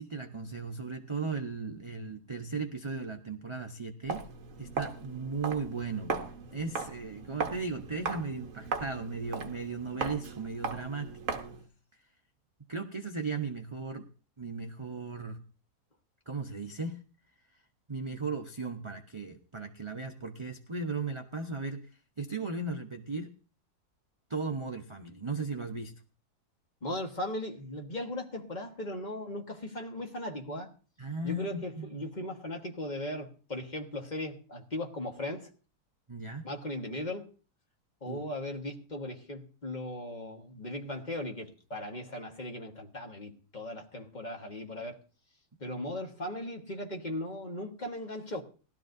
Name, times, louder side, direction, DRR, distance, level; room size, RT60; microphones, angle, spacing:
voice 1, 0.0-4.2 4.6-11.1 12.7-14.1 14.4-15.4 16.3-17.0 17.9-21.9 22.2-23.3 24.3-26.0 31.0-32.0 36.1-36.5 38.1-38.2, right 4 dB, 30° right, 0.5 m, -36 dB
Walk footsteps, 4.0-11.7, right 5 dB, 55° right, 1.4 m, -38 dB
voice 2, 26.8-30.7 31.2-35.5 36.4-37.3 38.0-45.0 45.6-48.4, left 1 dB, 30° left, 1.5 m, -38 dB
19.0 x 12.5 x 2.6 m
omnidirectional pair, 1.7 m